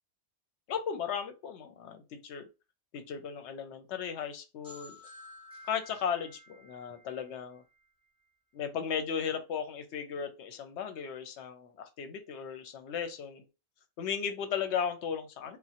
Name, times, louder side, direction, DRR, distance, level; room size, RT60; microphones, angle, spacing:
voice 1, 0.7-2.4 2.9-5.0 5.7-7.6 8.5-13.4 14.0-15.6, left 7 dB, 80° left, 0.9 m, -36 dB
sound 1, 4.6-8.3, left 2 dB, 5° right, 1.3 m, -53 dB
3.1 x 2.1 x 2.8 m
omnidirectional pair, 1.2 m